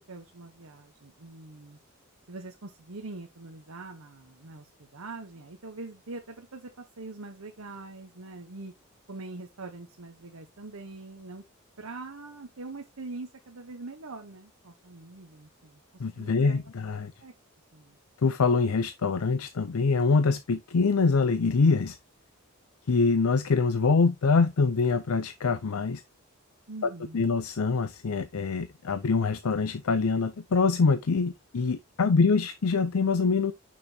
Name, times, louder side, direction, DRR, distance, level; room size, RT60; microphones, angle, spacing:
voice 1, 0.0-1.8 2.3-8.7 9.1-11.4 11.8-16.6 16.9-17.3 17.7-18.0 26.7-27.3 32.0-32.2, right 3 dB, 85° right, 1.1 m, -43 dB
voice 2, 16.0-17.1 18.2-22.0 22.9-26.0 27.1-33.5, left 4 dB, 80° left, 0.5 m, -24 dB
6.2 x 6.1 x 2.8 m
head